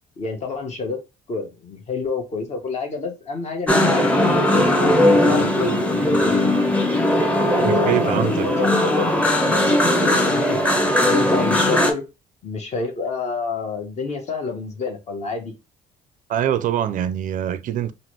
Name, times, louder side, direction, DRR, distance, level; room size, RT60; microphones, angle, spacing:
voice 1, 0.2-1.0 1.3-4.1 4.5-6.5 7.5-12.0 12.4-15.5, left 4 dB, 40° left, 1.0 m, -29 dB
sound 1, 3.7-11.9, left 1 dB, 10° left, 0.7 m, -18 dB
voice 2, 7.6-8.5 16.3-17.9, right 10 dB, 50° right, 0.4 m, -23 dB
3.9 x 2.0 x 3.0 m
cardioid pair, 110°, 17 cm